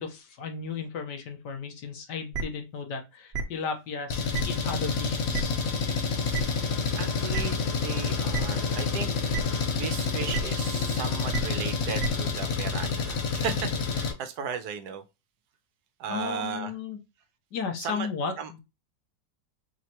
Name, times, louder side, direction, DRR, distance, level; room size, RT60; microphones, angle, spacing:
voice 1, 0.0-5.6 16.1-17.0 17.5-18.6, left 5 dB, 80° left, 1.6 m, -35 dB
sound 1, 2.3-2.4 3.3-3.4 4.3-4.4 5.3-5.4 6.3-6.4 7.3-7.4 8.3-8.4 9.3-9.4 10.3-10.4 11.3-11.4 12.0-12.1, right 4 dB, 50° right, 0.9 m, -29 dB
Engine, 4.1-14.1, left 5 dB, 60° left, 1.2 m, -28 dB
voice 2, 6.1-6.6 6.9-9.1 9.6-15.0 16.0-16.7 17.8-18.1 18.4-18.6, right 6 dB, 75° right, 1.2 m, -36 dB
4.6 x 3.2 x 2.9 m
omnidirectional pair, 1.8 m